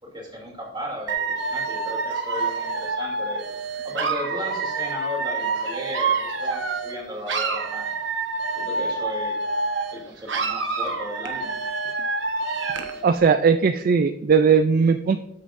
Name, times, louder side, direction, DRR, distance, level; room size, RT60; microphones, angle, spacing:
voice 1, 0.0-3.4 3.8-7.9 8.6-9.3 9.9-11.5, equal, 25° right, -3 dB, 2.7 m, -35 dB
Dog / Alarm, 1.1-7.0 7.3-10.0 10.3-13.0, right 3 dB, 75° right, 1.1 m, -27 dB
voice 2, 13.0-15.2, right 5 dB, 50° right, 9 dB, 0.3 m, -18 dB
13.0 x 6.7 x 2.6 m, 0.84 s
head